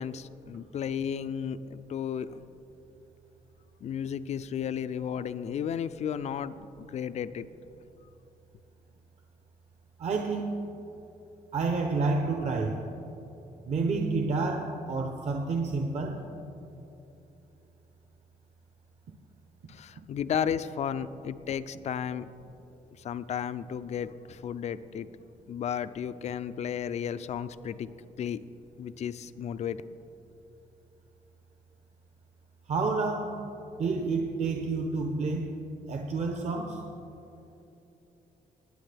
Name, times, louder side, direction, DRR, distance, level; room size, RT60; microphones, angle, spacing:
voice 1, 0.0-2.4 3.8-7.5 19.7-22.3 23.0-25.1 25.5-27.9 28.2-28.4 28.8-29.8, left 8 dB, 50° left, 14 dB, 0.4 m, -33 dB
voice 2, 10.0-10.7 11.5-12.9 13.7-16.2 32.7-33.4 33.8-35.5 35.9-36.8, right 3 dB, 50° right, 2 dB, 0.8 m, -29 dB
21.0 x 8.6 x 3.4 m, 2.9 s
cardioid pair, 150°, 15 cm